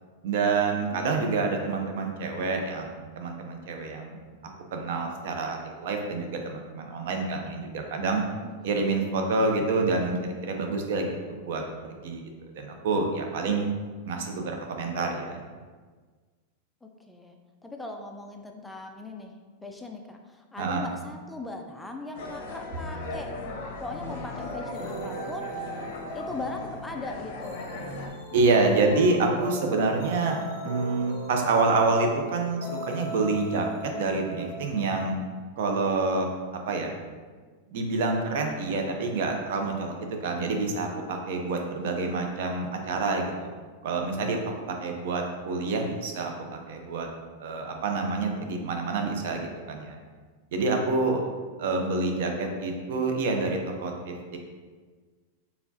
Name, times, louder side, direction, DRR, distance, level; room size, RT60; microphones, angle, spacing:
voice 1, 0.2-4.2 4.7-8.2 8.6-10.2 10.4-11.6 11.9-13.7 14.1-15.4 20.6-20.9 28.3-30.4 30.6-33.7 34.0-35.2 35.6-37.0 37.7-43.5 43.8-44.4 44.8-46.3 46.7-47.1 47.4-50.0 50.5-51.3 51.6-54.4, right 3 dB, 65° right, 3 dB, 0.7 m, -27 dB
voice 2, 8.4-8.8 16.8-17.4 17.6-19.3 19.6-25.8 26.1-27.6, left 2 dB, 5° left, 3 dB, 0.3 m, -40 dB
sound 1, 22.1-28.1, left 3 dB, 55° left, 0.7 m, -38 dB
sound 2, 24.4-35.1, right 2 dB, 40° left, 1.4 m, -38 dB
4.7 x 3.4 x 2.8 m, 1.5 s
supercardioid pair, 145°, 0 cm